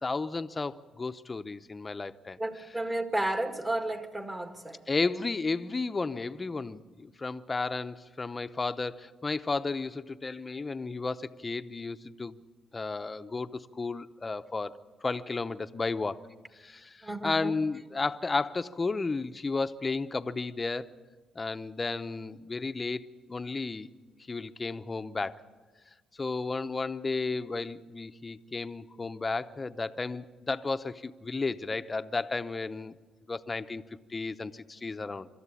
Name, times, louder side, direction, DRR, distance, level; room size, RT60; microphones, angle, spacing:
voice 1, 0.0-2.4 4.9-12.4 12.7-16.2 16.5-20.9 21.3-23.9 24.3-25.4 26.1-33.0 33.3-33.8 34.1-35.3, left 3 dB, 25° left, 0.8 m, -33 dB
voice 2, 2.4-5.1 17.0-17.5, right 1 dB, 20° right, 1.9 m, -33 dB
25.5 x 13.5 x 8.5 m
cardioid pair, 90°, 0 cm